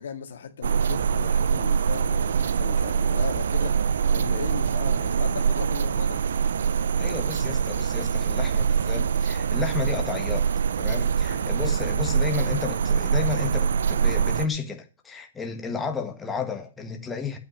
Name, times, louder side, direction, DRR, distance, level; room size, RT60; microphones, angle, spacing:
voice 1, 0.0-6.2 8.9-9.2 11.3-11.5, left 7 dB, 75° left, 2.0 m, -37 dB
sound 1, 0.6-14.5, right 6 dB, 75° right, 0.7 m, -24 dB
voice 2, 7.0-10.5 10.8-17.4, left 5 dB, 10° left, 1.6 m, -32 dB
8.9 x 8.2 x 6.5 m
hypercardioid pair, 150°, 0 cm